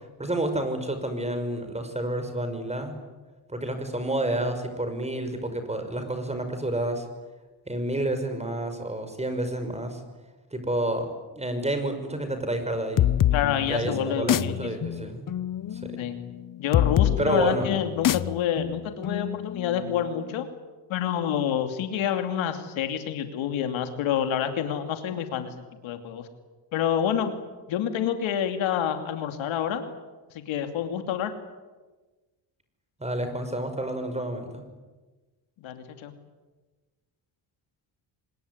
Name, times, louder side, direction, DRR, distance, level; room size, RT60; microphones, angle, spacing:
voice 1, 0.2-3.0 3.5-7.1 7.7-10.0 10.5-11.1 11.3-13.1 13.7-15.3 15.7-16.1 17.2-17.8 33.0-34.6, right 1 dB, 15° right, 7 dB, 5.6 m, -29 dB
sound 1, 13.0-20.4, left 11 dB, 45° left, 0.8 m, -27 dB
voice 2, 13.3-14.7 16.0-16.2 16.6-20.5 20.9-25.5 25.8-26.3 26.7-27.3 27.7-29.8 30.3-31.3 35.6-36.1, left 9 dB, 85° left, 7 dB, 2.8 m, -28 dB
25.5 x 20.5 x 9.9 m, 1.2 s
cardioid pair, 95°, 46 cm